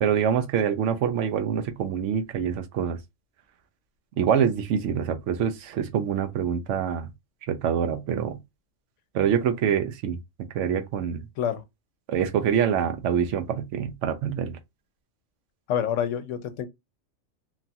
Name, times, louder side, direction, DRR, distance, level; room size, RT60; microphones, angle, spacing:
voice 1, 0.0-3.0 4.2-7.1 7.5-8.4 9.1-10.2 10.5-11.2 12.1-14.6, right 8 dB, 75° right, 0.9 m, -25 dB
voice 2, 15.7-16.7, left 9 dB, 75° left, 0.9 m, -27 dB
3.0 x 2.3 x 2.7 m
omnidirectional pair, 1.3 m